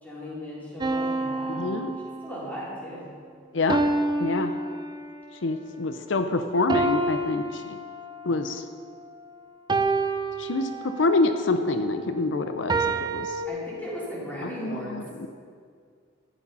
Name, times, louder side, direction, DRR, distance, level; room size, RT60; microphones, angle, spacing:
voice 1, 0.0-1.8 2.2-3.1 13.5-15.0, equal, 10° left, -7 dB, 3.8 m, -37 dB
sound 1, 0.8-2.6 3.7-5.3 6.7-8.4 9.7-11.2 12.7-13.5, right 2 dB, 25° right, 0.6 m, -28 dB
voice 2, 1.5-1.9 3.5-3.8 4.2-4.5 5.4-7.8 8.2-8.6 10.4-13.4 14.4-15.3, left 3 dB, 80° left, 8 dB, 0.6 m, -26 dB
12.5 x 10.0 x 5.5 m, 2.1 s
head